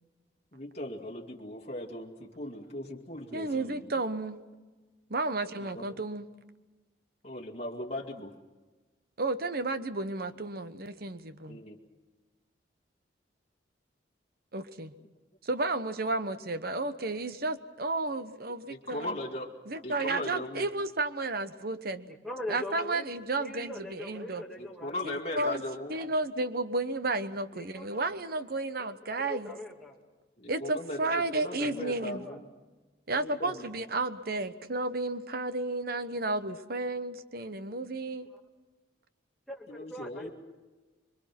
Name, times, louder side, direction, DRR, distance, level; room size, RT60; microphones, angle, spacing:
voice 1, 0.5-3.9 5.6-5.9 7.2-8.3 11.5-11.8 18.7-19.5 19.8-20.7 24.6-25.9 30.4-32.5 33.1-33.7 39.7-40.3, left 1 dB, 35° left, -1 dB, 2.1 m, -38 dB
voice 2, 3.3-4.4 5.1-6.3 9.2-11.6 14.5-14.9 15.4-19.2 19.7-22.1 22.5-24.4 25.0-25.6 25.9-29.6 30.5-32.3 33.1-38.3, right 2 dB, 55° right, 11 dB, 1.1 m, -32 dB
voice 3, 22.1-23.1 23.4-24.9 27.5-27.9 28.8-28.9 29.2-30.0 31.5-32.4 39.5-40.3, left 1 dB, ahead, -1 dB, 2.6 m, -41 dB
26.0 x 23.5 x 6.0 m, 1.2 s
head